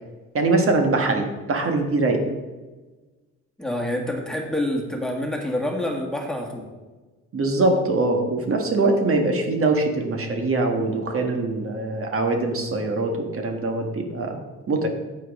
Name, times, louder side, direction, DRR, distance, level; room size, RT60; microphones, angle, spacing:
voice 1, 0.3-2.2 7.3-14.4 14.7-14.9, right 2 dB, 45° right, 3 dB, 1.4 m, -23 dB
voice 2, 3.6-6.7, left 1 dB, ahead, 1 dB, 1.7 m, -27 dB
9.0 x 8.2 x 3.6 m, 1.2 s
cardioid pair, 90°, 30 cm